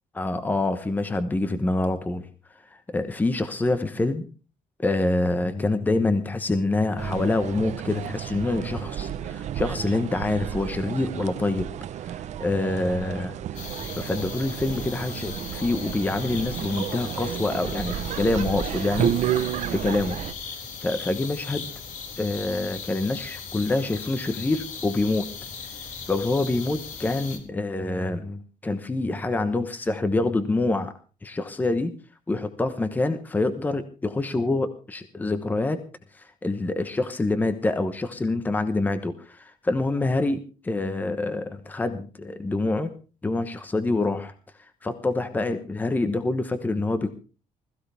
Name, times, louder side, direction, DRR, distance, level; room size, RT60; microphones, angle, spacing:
voice 1, 0.1-2.3 2.7-4.3 4.8-11.7 12.0-13.3 13.9-19.4 19.7-20.2 20.8-21.7 22.2-25.3 26.1-30.9 31.2-31.9 32.3-35.8 36.1-42.9 43.2-44.3 44.8-47.2, left 2 dB, 10° left, 10 dB, 1.1 m, -26 dB
sound 1, 7.0-20.3, right 10 dB, 55° right, 0.9 m, -31 dB
sound 2, 13.6-27.4, left 6 dB, 60° left, 3.9 m, -38 dB
21.0 x 15.0 x 3.5 m, 0.35 s
cardioid pair, 175°, 14 cm